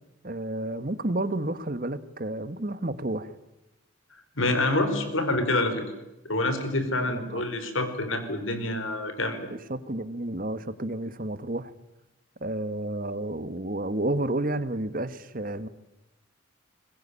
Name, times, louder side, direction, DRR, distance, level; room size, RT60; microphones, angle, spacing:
voice 1, 0.2-3.3 7.1-7.4 9.5-11.7 12.4-15.7, right 1 dB, 40° right, 13 dB, 1.4 m, -31 dB
voice 2, 4.4-5.8 6.2-9.5, left 2 dB, 75° left, 9 dB, 4.5 m, -27 dB
23.0 x 21.0 x 10.0 m, 0.95 s
head